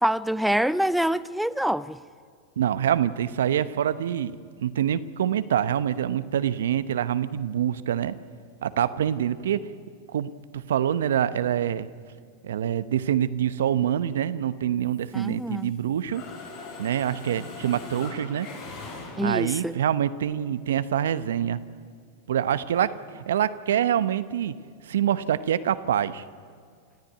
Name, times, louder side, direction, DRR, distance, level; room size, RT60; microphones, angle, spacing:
voice 1, 0.0-2.0 15.1-15.7 19.2-19.8, equal, ahead, 0.5 m, -25 dB
voice 2, 2.6-4.4 4.6-8.1 8.6-9.6 10.1-11.9 12.4-16.2 16.8-18.5 19.2-21.6 22.3-24.5 24.8-26.2, right 10 dB, 75° right, 0.9 m, -25 dB
Mechanisms, 14.8-15.8 16.1-19.6, left 3 dB, 60° left, 6.1 m, -41 dB
26.5 x 14.5 x 9.4 m
hypercardioid pair, 95°, 0 cm